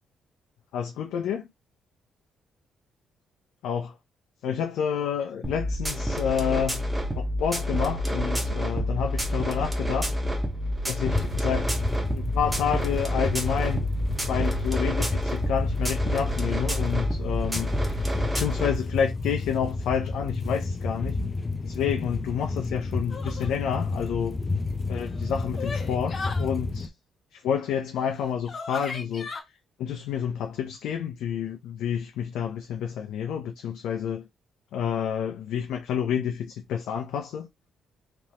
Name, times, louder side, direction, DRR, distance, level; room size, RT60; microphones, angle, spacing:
voice 1, 0.7-1.5 3.6-4.0 4.4-6.8 7.2-10.1 10.9-11.7 12.1-13.9 14.3-21.2 21.6-24.4 24.9-26.9 27.3-29.3 29.8-34.3 34.7-37.5, left 8 dB, 85° left, 0.6 m, -29 dB
sound 1, 5.4-18.8, equal, 15° right, 1.2 m, -28 dB
sound 2, 11.1-26.9, left 3 dB, 25° left, 0.6 m, -31 dB
sound 3, 23.1-23.5 24.9-26.5 28.0-28.1 28.4-29.4, left 4 dB, 45° left, 1.2 m, -36 dB
3.5 x 3.0 x 2.9 m
cardioid pair, 90°, 0 cm